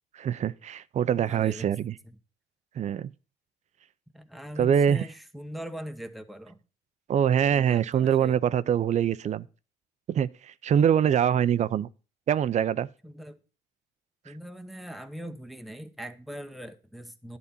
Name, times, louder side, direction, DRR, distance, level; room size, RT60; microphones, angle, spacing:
voice 1, 0.1-2.0 2.8-3.1 4.6-5.0 7.1-9.5 10.1-11.9 12.3-12.9, right 9 dB, 45° right, 0.5 m, -24 dB
voice 2, 1.2-1.7 2.0-2.2 4.1-6.6 7.5-8.4 13.0-13.4 14.2-17.4, equal, ahead, 0.9 m, -41 dB
11.0 x 4.0 x 7.1 m
cardioid pair, 110°, 17 cm